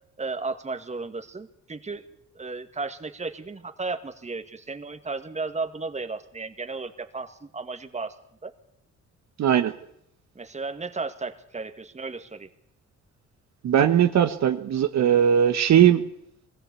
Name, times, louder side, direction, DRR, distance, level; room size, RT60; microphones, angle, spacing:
voice 1, 0.2-2.1 2.4-8.1 8.4-8.5 10.4-12.5, right 3 dB, 25° right, 8 dB, 1.9 m, -34 dB
voice 2, 9.4-9.7 13.6-16.0, right 9 dB, 65° right, 8 dB, 1.3 m, -19 dB
21.0 x 16.0 x 8.4 m, 0.74 s
cardioid pair, 90°, 30 cm